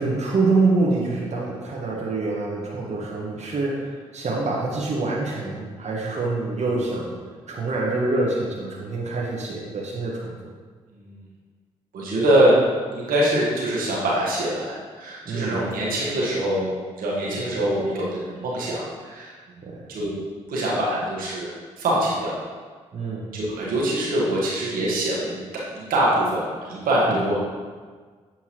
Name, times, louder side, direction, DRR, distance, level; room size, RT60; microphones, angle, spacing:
voice 1, 0.0-7.1 7.5-10.3 15.2-15.6 17.3-17.4 19.6-19.8 22.9-23.3 27.1-27.2, right 3 dB, 50° right, -4 dB, 1.1 m, -25 dB
voice 2, 10.9-11.2 11.9-12.6 12.9-20.2 20.5-22.4 23.0-25.4 25.7-27.4, right 1 dB, 75° right, -5 dB, 1.4 m, -24 dB
7.3 x 4.5 x 2.9 m, 1.5 s
hypercardioid pair, 40°, 15 cm